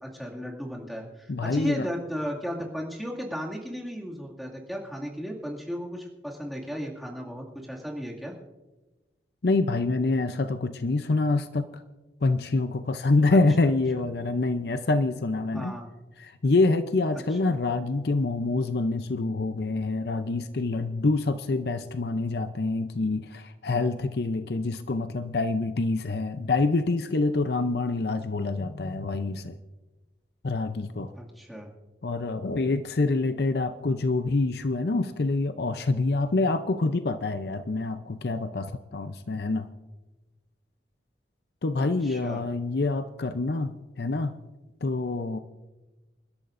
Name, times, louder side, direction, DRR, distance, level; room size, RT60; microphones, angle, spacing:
voice 1, 0.0-8.3 13.3-13.4 15.5-15.9 17.4-17.5 31.1-31.7 41.8-42.4, equal, ahead, -2 dB, 2.1 m, -35 dB
voice 2, 1.3-1.9 9.4-11.8 12.2-15.7 16.2-29.6 30.4-31.1 32.0-39.7 41.6-44.3 44.8-45.4, left 3 dB, 60° left, 10 dB, 0.6 m, -26 dB
28.0 x 12.0 x 2.6 m, 1.1 s
head